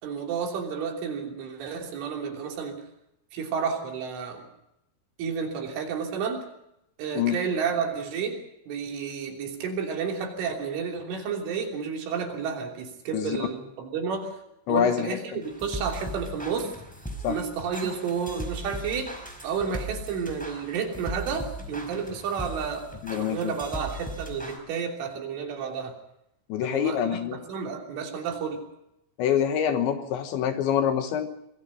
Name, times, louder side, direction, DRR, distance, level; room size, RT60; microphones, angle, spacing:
voice 1, 0.0-2.8 3.3-4.5 5.2-6.5 7.0-14.4 14.7-16.7 17.3-19.1 19.4-26.0 26.6-28.7, right 6 dB, 70° right, 2 dB, 5.5 m, -31 dB
voice 2, 13.1-13.5 14.7-15.4 17.2-17.4 23.0-23.5 26.5-27.4 29.2-31.3, left 9 dB, 70° left, 7 dB, 3.3 m, -26 dB
sound 1, 15.4-24.6, right 1 dB, ahead, 4.1 m, -38 dB
26.0 x 20.5 x 5.5 m, 0.82 s
omnidirectional pair, 5.9 m